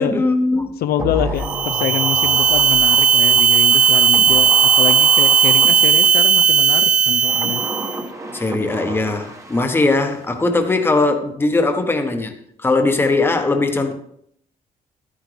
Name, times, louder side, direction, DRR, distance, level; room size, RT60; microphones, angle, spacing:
voice 1, 0.0-0.8 8.3-13.9, left 2 dB, 15° left, 5 dB, 1.0 m, -19 dB
voice 2, 0.8-7.6, left 10 dB, 75° left, 10 dB, 0.5 m, -25 dB
sound 1, 1.0-6.5 7.1-10.3 10.6-10.7, right 1 dB, 20° right, 1.1 m, -31 dB
sound 2, 1.4-8.0, right 7 dB, 55° right, 0.4 m, -15 dB
12.5 x 9.9 x 3.4 m, 0.70 s
cardioid pair, 170°, 16 cm